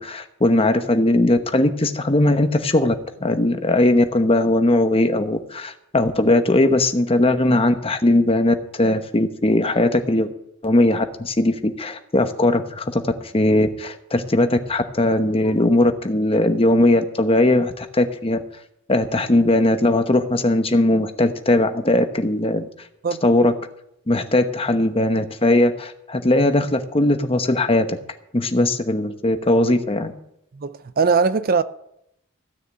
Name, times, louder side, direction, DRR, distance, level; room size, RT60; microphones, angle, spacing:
voice 1, 0.0-2.9 3.2-10.3 10.6-18.4 18.9-22.7 23.2-23.5 24.1-28.0 28.3-30.1, left 1 dB, 25° left, 1.0 m, -19 dB
voice 2, 30.5-31.6, right 5 dB, 40° right, 0.5 m, -20 dB
15.0 x 6.6 x 8.9 m
head